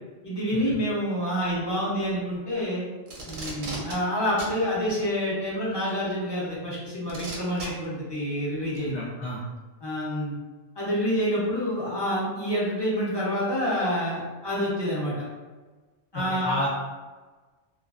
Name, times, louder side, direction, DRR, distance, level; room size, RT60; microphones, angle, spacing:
voice 1, 0.2-2.8 3.3-9.0 9.8-10.3 10.8-15.3 16.1-16.5, equal, 30° left, -7 dB, 0.5 m, -27 dB
Packing tape duct tape, 3.1-4.0 4.4-4.5 5.9-6.0 7.1-7.7 8.8-8.9, right 2 dB, 55° right, 0.6 m, -36 dB
voice 2, 8.8-9.4 16.1-16.7, left 1 dB, 70° left, -6 dB, 0.8 m, -31 dB
2.3 x 2.3 x 2.3 m, 1.3 s
omnidirectional pair, 1.3 m